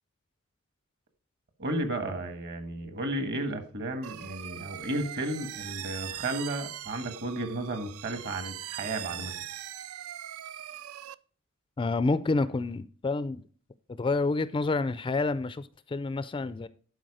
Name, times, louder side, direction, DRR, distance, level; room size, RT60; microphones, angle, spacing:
voice 1, 1.6-9.4, right 1 dB, 50° right, 1.5 m, -33 dB
sound 1, 4.0-11.1, right 12 dB, 70° right, 0.4 m, -41 dB
voice 2, 11.8-13.4 13.9-16.7, left 3 dB, 25° left, 0.3 m, -28 dB
11.5 x 4.6 x 4.9 m
head